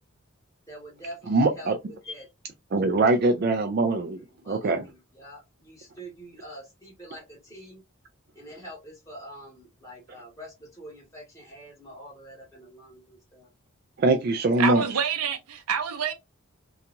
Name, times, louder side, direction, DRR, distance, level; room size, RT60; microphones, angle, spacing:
voice 1, 0.7-1.7 2.0-2.3 3.9-7.8 8.3-13.5, equal, 15° left, 1.4 m, -45 dB
voice 2, 1.3-1.8 2.7-4.2 4.5-4.9 14.0-14.8, right 2 dB, 45° right, 0.3 m, -22 dB
voice 3, 14.6-16.1, right 6 dB, 90° right, 0.6 m, -27 dB
2.8 x 2.3 x 2.5 m
head